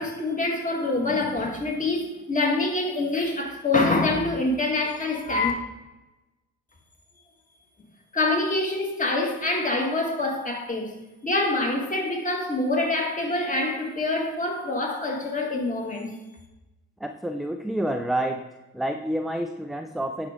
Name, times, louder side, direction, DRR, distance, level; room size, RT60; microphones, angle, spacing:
voice 1, 0.0-5.5 8.1-11.0 11.2-16.1, left 2 dB, 25° left, 2.0 m, -25 dB
voice 2, 17.0-18.5 18.7-20.3, right 1 dB, ahead, 0.5 m, -28 dB
9.8 x 4.9 x 3.7 m
cardioid pair, 90°, 30 cm